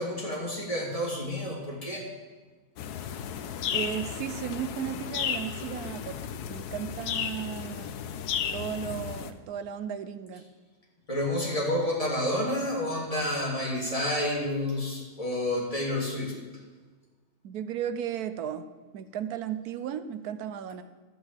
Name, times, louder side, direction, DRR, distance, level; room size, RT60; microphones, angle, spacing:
voice 1, 0.0-2.1 11.1-16.4, left 1 dB, 20° left, -4 dB, 3.3 m, -29 dB
sound 1, 2.8-9.3, left 8 dB, 90° left, 1.2 m, -34 dB
voice 2, 3.7-6.2 6.5-8.0 8.5-10.5 17.4-18.7 18.9-20.8, right 9 dB, 75° right, 12 dB, 1.2 m, -35 dB
12.0 x 6.3 x 8.3 m, 1.4 s
omnidirectional pair, 1.6 m